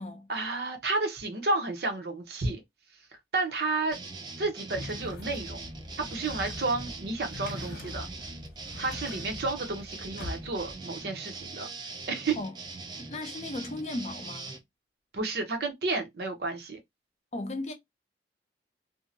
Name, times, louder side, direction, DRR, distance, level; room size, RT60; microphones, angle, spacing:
voice 1, 0.3-2.6 3.3-4.0 4.4-5.7 6.0-8.1 8.8-11.7 12.1-12.4 15.1-16.8, right 3 dB, 60° right, 0.7 m, -31 dB
sound 1, 3.9-14.6, right 3 dB, 25° right, 0.4 m, -42 dB
sound 2, 4.7-10.7, left 2 dB, 60° left, 1.1 m, -42 dB
voice 2, 13.0-14.6 17.3-17.7, left 2 dB, 35° left, 0.5 m, -36 dB
2.6 x 2.0 x 2.6 m
head